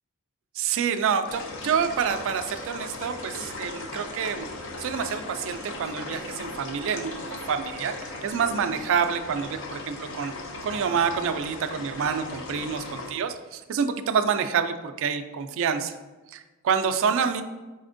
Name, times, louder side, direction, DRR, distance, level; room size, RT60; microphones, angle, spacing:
voice 1, 0.6-4.5 4.8-7.2 7.5-10.3 10.6-16.0 16.3-17.4, right 6 dB, 60° right, 8 dB, 0.3 m, -27 dB
sound 1, 1.3-13.1, left 2 dB, 60° left, 0.5 m, -38 dB
4.2 x 4.1 x 2.5 m, 1.2 s
head